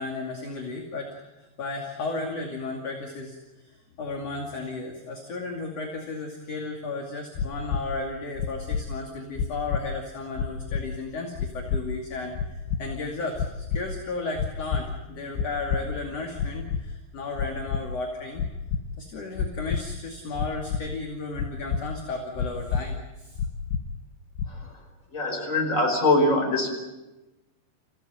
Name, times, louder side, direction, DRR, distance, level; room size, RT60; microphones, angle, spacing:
voice 1, 0.0-18.4 19.0-23.4, left 3 dB, 40° left, 1 dB, 3.0 m, -34 dB
sound 1, 7.4-7.8 8.4-8.8 9.4-9.8 10.4-10.8 11.4-11.8 12.4-12.8 13.4-13.8 14.4-14.8 15.4-15.8 16.4-16.8 17.4-17.8 18.4-18.8 19.4-19.8 20.4-20.8 21.4-21.8 22.4-22.8 23.4-23.8 24.4-24.7, left 7 dB, 80° left, 3.2 m, -27 dB
voice 2, 25.1-26.7, left 2 dB, 15° left, 2 dB, 5.2 m, -23 dB
28.0 x 16.5 x 9.3 m, 1.1 s
omnidirectional pair, 5.3 m